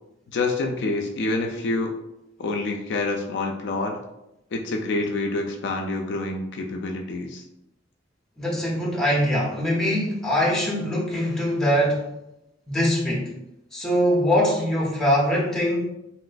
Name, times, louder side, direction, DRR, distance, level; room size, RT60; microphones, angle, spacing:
voice 1, 0.3-1.9 2.4-4.0 4.5-7.4, left 2 dB, 60° left, 2 dB, 0.3 m, -27 dB
voice 2, 8.4-12.1 12.7-13.3 13.7-15.8, equal, 5° left, -5 dB, 0.9 m, -22 dB
3.0 x 3.0 x 2.5 m, 0.87 s
head